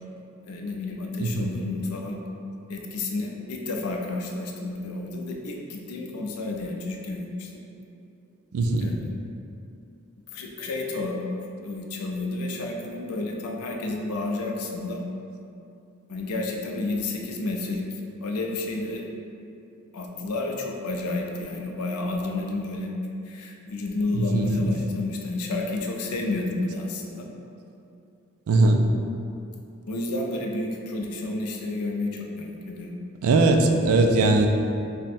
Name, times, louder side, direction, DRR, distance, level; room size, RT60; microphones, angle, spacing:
voice 1, 0.4-2.2 2.7-7.6 8.8-9.1 10.3-15.0 16.1-17.8 18.2-19.1 19.9-22.9 23.3-27.3 29.9-32.9, left 2 dB, 90° left, 1 dB, 0.5 m, -31 dB
voice 2, 1.2-1.5 8.5-8.9 24.1-24.5 28.5-28.8 33.2-34.5, right 2 dB, 75° right, 4 dB, 0.4 m, -20 dB
3.5 x 2.1 x 4.2 m, 2.7 s
head